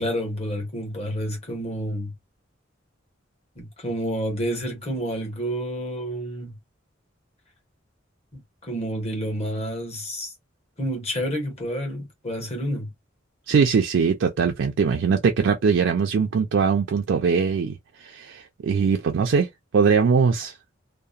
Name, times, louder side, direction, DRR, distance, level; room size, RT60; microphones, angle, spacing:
voice 1, 0.0-2.1 3.6-6.6 8.3-10.3 10.8-12.9, equal, 35° left, 1.0 m, -29 dB
voice 2, 13.5-19.5 19.7-20.5, right 5 dB, 65° right, 0.4 m, -21 dB
2.7 x 2.0 x 2.3 m
head